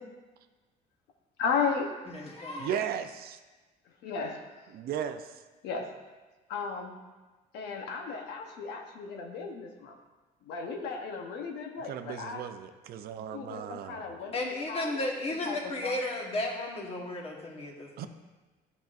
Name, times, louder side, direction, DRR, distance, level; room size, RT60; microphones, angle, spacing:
voice 1, 1.4-1.9 4.0-4.4 5.6-5.9 6.5-6.9 7.5-10.0 10.5-12.4 13.3-15.0 15.3-15.9, left 5 dB, 85° left, 3 dB, 0.9 m, -35 dB
voice 2, 2.1-2.7 13.7-13.9 14.3-18.1, left 2 dB, 35° left, 0 dB, 1.5 m, -34 dB
voice 3, 2.6-3.4 4.7-5.3 11.8-14.1 18.0-18.1, right 9 dB, 65° right, 9 dB, 0.5 m, -36 dB
10.5 x 5.9 x 2.5 m, 1.2 s
cardioid pair, 110°, 17 cm